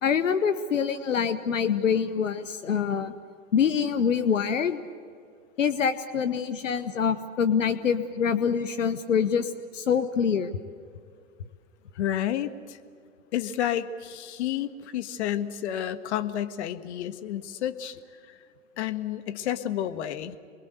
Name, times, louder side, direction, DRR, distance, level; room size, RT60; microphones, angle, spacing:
voice 1, 0.0-3.1 3.5-4.8 5.6-10.5, left 7 dB, 90° left, 14 dB, 1.2 m, -25 dB
voice 2, 11.9-12.8 13.3-18.0 18.3-18.4 18.8-20.4, left 11 dB, 65° left, 10 dB, 1.6 m, -30 dB
28.0 x 21.5 x 8.2 m, 2.2 s
hypercardioid pair, 110°, 37 cm